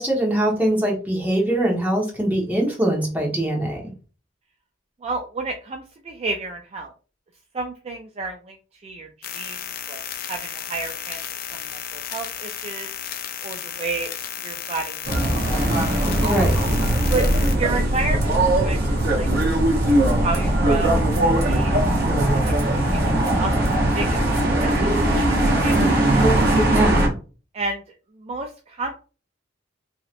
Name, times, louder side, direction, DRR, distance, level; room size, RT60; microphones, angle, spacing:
voice 1, 0.0-3.9 16.2-16.6 26.7-27.1, right 1 dB, 10° right, -2 dB, 0.9 m, -22 dB
voice 2, 5.0-6.9 7.5-9.6 9.9-10.0 10.3-11.2 11.5-12.9 13.4-14.1 14.4-15.2 17.1-17.2 17.6-19.3 20.2-20.9 21.4-21.7 22.3-24.8 25.1-26.3 27.5-27.8 28.2-29.0, right 3 dB, 30° right, 3 dB, 0.3 m, -31 dB
sound 1, 9.2-17.5, left 9 dB, 45° left, 0.4 m, -33 dB
sound 2, 15.0-27.1, right 1 dB, 50° right, 0.9 m, -20 dB
3.1 x 2.8 x 2.4 m, 0.36 s
head